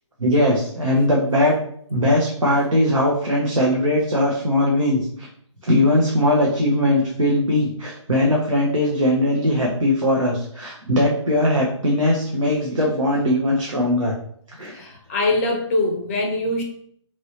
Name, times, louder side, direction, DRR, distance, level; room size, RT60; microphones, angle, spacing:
voice 1, 0.2-1.5 1.9-5.3 5.6-14.1 14.5-14.8, left 1 dB, 85° right, -2 dB, 0.7 m, -20 dB
voice 2, 14.7-16.6, left 2 dB, 25° left, 2 dB, 0.5 m, -23 dB
3.0 x 2.7 x 2.7 m, 0.64 s
figure-of-eight pair, 135°, 16 cm